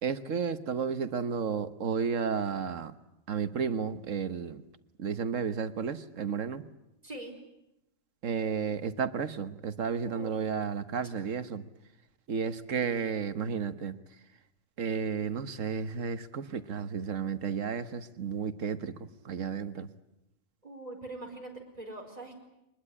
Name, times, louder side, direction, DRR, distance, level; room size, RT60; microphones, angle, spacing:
voice 1, 0.0-2.9 3.3-4.6 5.0-6.6 8.2-11.6 12.3-14.0 14.8-18.9 19.2-19.9, right 6 dB, 70° right, 12 dB, 1.5 m, -32 dB
voice 2, 20.6-21.5 21.8-22.4, right 2 dB, 30° right, 2 dB, 4.8 m, -42 dB
24.0 x 20.5 x 9.9 m, 0.87 s
omnidirectional pair, 1.4 m